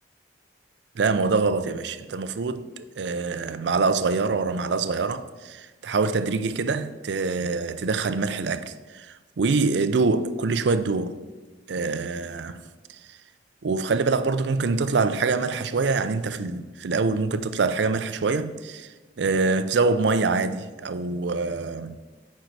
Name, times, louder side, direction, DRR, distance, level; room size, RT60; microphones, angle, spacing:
voice 1, 1.0-11.2 11.7-12.6 13.6-18.9 19.2-22.0, right 4 dB, 70° right, 0.5 m, -25 dB
9.1 x 5.3 x 4.7 m
head